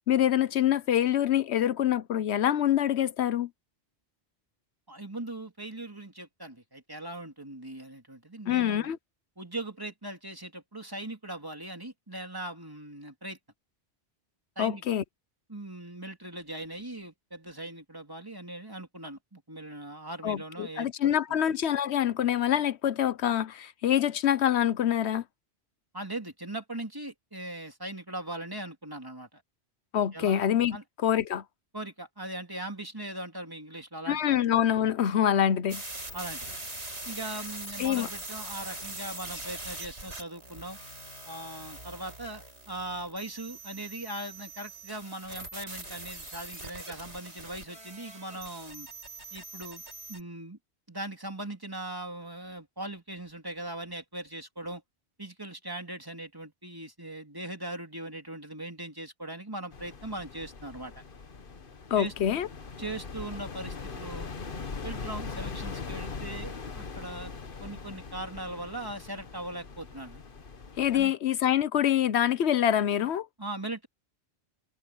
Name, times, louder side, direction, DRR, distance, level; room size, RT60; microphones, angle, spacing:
voice 1, 0.1-3.5 8.5-9.0 14.6-15.0 20.2-25.2 29.9-30.8 31.0-31.4 34.1-35.8 37.8-38.1 61.9-62.5 70.8-73.3, left 10 dB, 75° left, 1.1 m, -25 dB
voice 2, 4.9-8.9 9.4-13.4 14.6-14.8 15.5-21.4 25.9-29.4 30.1-30.4 30.7-30.8 31.7-34.4 36.1-36.5 37.0-40.8 41.3-48.9 49.3-49.8 50.1-50.6 50.9-54.8 55.2-60.9 61.9-62.1 62.8-64.3 64.8-67.3 67.6-70.2 70.9-71.1 73.4-73.9, right 1 dB, 20° right, 2.9 m, -40 dB
sound 1, 35.7-50.2, right 2 dB, 85° right, 6.6 m, -42 dB
sound 2, 59.7-71.1, left 4 dB, 50° left, 1.4 m, -41 dB
omnidirectional pair, 1.1 m